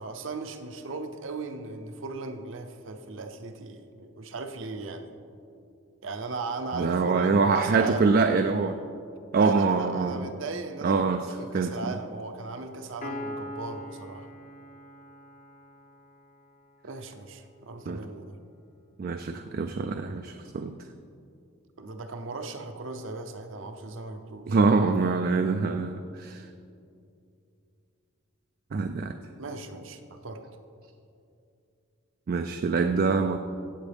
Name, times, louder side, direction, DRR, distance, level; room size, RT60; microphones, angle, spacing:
voice 1, 0.0-5.2 6.0-8.2 9.4-14.3 16.8-18.4 21.8-24.6 29.4-30.4, right 3 dB, 65° right, 6 dB, 0.7 m, -37 dB
voice 2, 6.7-8.8 9.3-10.3 10.8-11.7 17.9-18.0 19.0-20.7 24.5-26.5 28.7-29.2 32.3-33.4, right 4 dB, 45° right, 7 dB, 0.3 m, -25 dB
Piano, 13.0-16.6, left 1 dB, 35° left, 0.7 m, -41 dB
16.0 x 7.2 x 3.5 m, 2.5 s
head